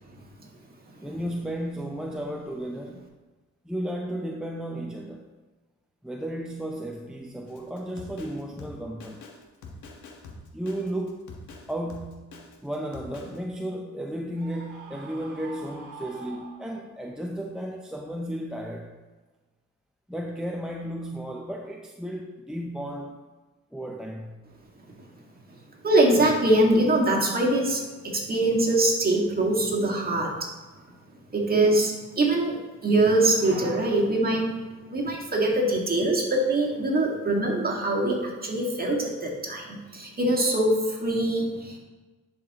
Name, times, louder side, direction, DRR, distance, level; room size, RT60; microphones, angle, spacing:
voice 1, 1.0-3.1 3.6-5.3 6.0-9.2 10.5-11.2 11.7-12.3 12.6-18.9 20.1-23.2 23.7-24.4, right 1 dB, ahead, 0 dB, 0.6 m, -34 dB
Drum kit, 7.5-13.4, left 3 dB, 75° left, 1.4 m, -45 dB
Screaming, 14.4-17.1, right 4 dB, 90° right, 1.2 m, -45 dB
voice 2, 25.8-30.5 31.3-34.6 34.9-41.8, right 1 dB, 30° right, -2 dB, 1.9 m, -23 dB
11.0 x 5.0 x 3.0 m, 1.2 s
cardioid pair, 90°, 30 cm